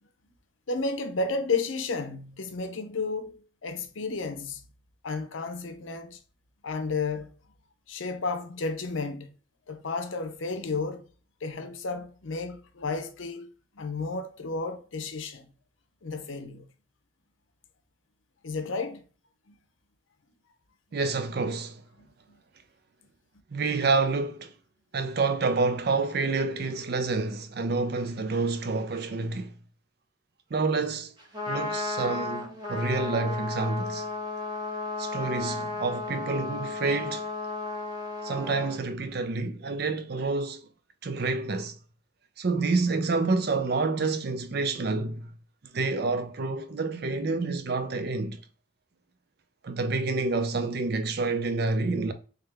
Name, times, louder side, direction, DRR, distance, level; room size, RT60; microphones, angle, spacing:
voice 1, 0.7-4.6 5.0-6.2 6.6-7.3 7.9-9.3 9.7-11.0 11.4-13.5 13.7-15.5 16.0-16.7 18.4-19.0 19.5-19.6 22.0-22.4, left 3 dB, 80° left, 0.7 m, -32 dB
voice 2, 20.9-21.8 23.5-24.5 24.9-29.5 30.5-31.1 31.5-34.1 35.0-37.2 38.2-40.6 41.0-41.8 42.4-45.3 45.7-48.4 49.6-52.1, right 3 dB, 50° right, 0.5 m, -28 dB
Trumpet, 31.2-38.8, left 3 dB, 20° right, 1.2 m, -34 dB
3.5 x 3.2 x 3.4 m
head